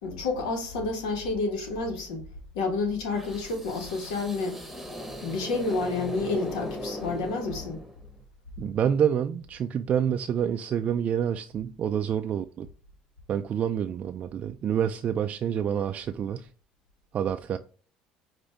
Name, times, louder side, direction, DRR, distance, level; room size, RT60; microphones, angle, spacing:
voice 1, 0.0-2.2 2.5-4.6 5.2-7.8, left 3 dB, 85° left, 1.4 m, -29 dB
sound 1, 3.1-8.2, equal, 5° right, 1.1 m, -39 dB
voice 2, 8.6-12.7 13.3-16.5 17.1-17.6, right 8 dB, 45° right, 0.3 m, -27 dB
5.2 x 2.6 x 3.4 m
supercardioid pair, 85°, 3 cm